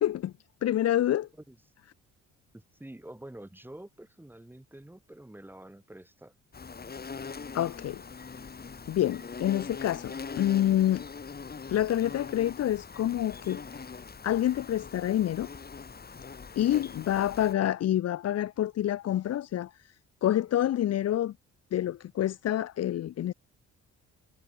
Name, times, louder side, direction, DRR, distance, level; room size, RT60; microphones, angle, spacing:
voice 1, 0.0-0.3 0.6-1.3 7.5-8.0 8.9-11.1 11.7-13.8 14.2-15.5 16.6-19.9 20.2-21.3 21.7-23.3, left 12 dB, 55° left, 0.7 m, -27 dB
voice 2, 2.5-6.3, right 1 dB, 5° right, 2.5 m, -47 dB
Insect, 6.5-17.5, left 5 dB, 30° left, 2.5 m, -42 dB
cardioid pair, 90°, 30 cm